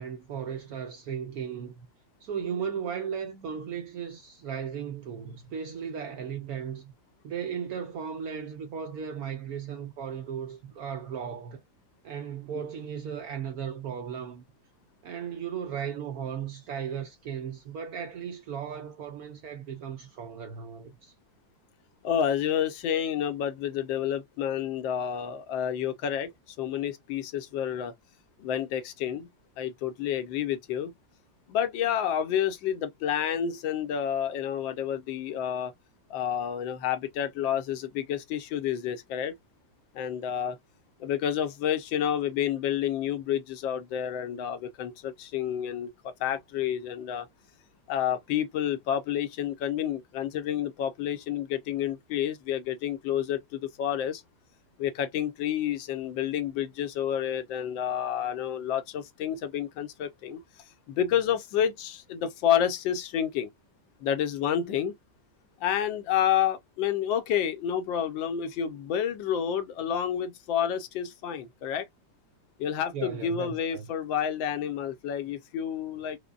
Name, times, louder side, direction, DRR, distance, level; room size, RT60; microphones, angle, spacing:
voice 1, 0.0-1.9 2.2-6.9 7.2-11.6 12.0-14.4 15.0-21.1 72.9-73.9, right 7 dB, 75° right, 0.8 m, -36 dB
voice 2, 22.0-26.3 26.6-27.9 28.4-29.3 29.6-30.9 31.5-35.7 36.1-39.3 39.9-40.6 41.0-47.3 47.9-54.2 54.8-60.4 60.9-63.5 64.0-64.9 65.6-71.9 72.6-76.2, left 9 dB, 80° left, 1.4 m, -29 dB
5.0 x 2.2 x 2.3 m
omnidirectional pair, 2.1 m